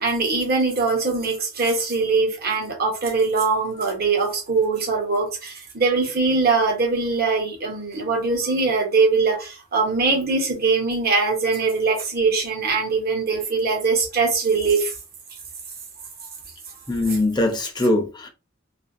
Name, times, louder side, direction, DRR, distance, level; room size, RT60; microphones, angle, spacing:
voice 1, 0.0-14.9 17.1-17.2, right 4 dB, 50° right, 1.1 m, -22 dB
voice 2, 16.9-18.3, left 2 dB, 20° left, 0.6 m, -21 dB
2.7 x 2.6 x 2.6 m
head